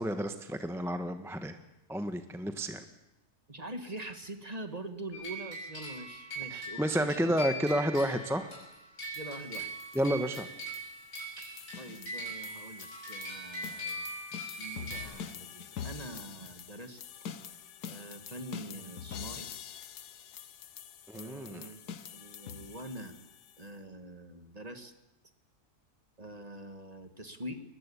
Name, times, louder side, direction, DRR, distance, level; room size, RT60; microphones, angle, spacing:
voice 1, 0.0-1.6 1.9-2.8 6.5-8.5 9.9-10.5 21.1-21.7, equal, ahead, 8 dB, 1.1 m, -31 dB
voice 2, 3.5-7.4 9.1-9.7 11.4-11.5 11.8-14.1 14.6-17.0 17.9-19.5 21.1-21.8 22.1-23.2 23.6-24.9 26.2-27.6, right 1 dB, 25° right, 8 dB, 1.6 m, -44 dB
sound 1, 5.1-15.0, right 1 dB, 60° left, 6.8 m, -41 dB
sound 2, 9.1-23.7, left 8 dB, 80° left, 1.6 m, -46 dB
22.5 x 20.0 x 8.4 m, 0.96 s
omnidirectional pair, 1.7 m